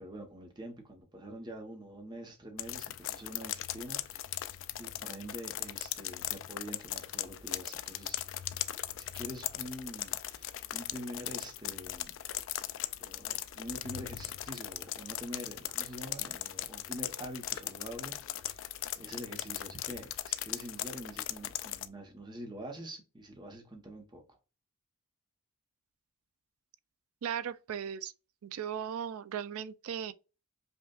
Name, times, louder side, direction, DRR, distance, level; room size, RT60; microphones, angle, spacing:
voice 1, 0.0-4.5 4.8-8.2 9.0-12.1 13.0-18.6 19.0-24.4, equal, 20° right, 0.9 m, -45 dB
sound 1, 2.6-21.9, left 13 dB, 60° left, 0.3 m, -39 dB
voice 2, 27.2-28.1 28.4-30.1, right 8 dB, 75° right, 0.4 m, -37 dB
5.3 x 2.4 x 2.3 m
head